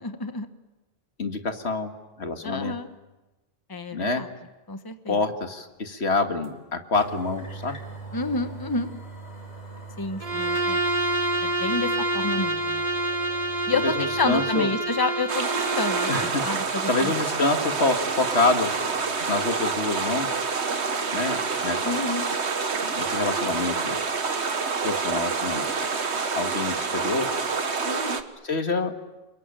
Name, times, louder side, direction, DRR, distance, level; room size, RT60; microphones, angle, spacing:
voice 1, 0.0-0.5 2.4-2.9 3.7-4.3 4.7-5.2 8.1-8.9 10.0-10.8 11.4-12.8 13.7-16.1 16.4-17.1 21.8-22.3 27.8-28.2, left 3 dB, 20° left, 8 dB, 1.3 m, -29 dB
voice 2, 1.2-1.9 2.2-2.8 3.9-4.2 5.1-7.8 13.8-14.7 16.1-16.4 16.9-18.7 19.3-20.3 21.1-21.9 22.9-24.0 24.8-25.6 26.3-27.3 28.4-28.9, left 3 dB, 80° left, 5 dB, 2.2 m, -26 dB
sound 1, 6.4-6.5 6.9-14.5 14.9-15.0 17.5-20.2, right 3 dB, 40° left, 4.2 m, -42 dB
Bowed string instrument, 10.2-16.4, right 2 dB, 35° right, 1.7 m, -27 dB
sound 2, 15.3-28.2, right 4 dB, 80° right, 1.8 m, -27 dB
29.5 x 22.0 x 9.1 m, 1.1 s
omnidirectional pair, 1.1 m